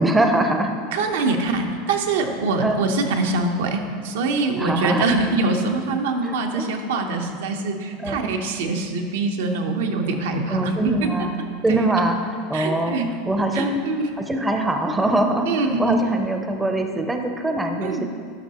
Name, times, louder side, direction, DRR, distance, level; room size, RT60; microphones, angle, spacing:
voice 1, 0.0-0.7 2.6-2.9 4.6-5.2 6.2-6.6 8.0-8.4 10.5-11.4 11.6-13.0 13.3-13.8 14.3-18.0, right 1 dB, 10° right, 4 dB, 0.5 m, -23 dB
voice 2, 0.9-11.1 11.7-11.9 12.5-13.2 13.5-14.1 15.5-15.9 17.8-18.0, right 3 dB, 90° right, 3 dB, 0.7 m, -24 dB
11.0 x 5.4 x 2.9 m, 2.2 s
supercardioid pair, 140°, 0 cm